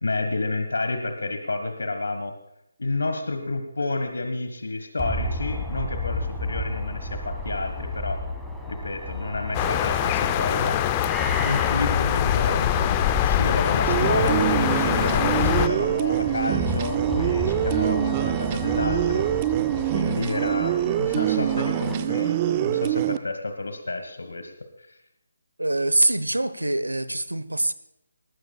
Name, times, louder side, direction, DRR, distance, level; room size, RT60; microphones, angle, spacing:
voice 1, 0.0-2.3 2.8-8.2 8.7-10.8 11.4-19.3 19.7-24.5 24.8-24.9, left 2 dB, 75° left, 6 dB, 1.5 m, -30 dB
sound 1, 5.0-22.0, left 1 dB, ahead, 1.5 m, -32 dB
sound 2, 9.5-15.7, left 11 dB, 25° left, 0.6 m, -23 dB
sound 3, 13.9-23.2, right 13 dB, 25° right, 0.5 m, -24 dB
voice 2, 25.6-27.7, right 1 dB, 90° right, 15 dB, 0.9 m, -24 dB
20.0 x 14.5 x 2.3 m, 0.81 s
figure-of-eight pair, 150°, 0 cm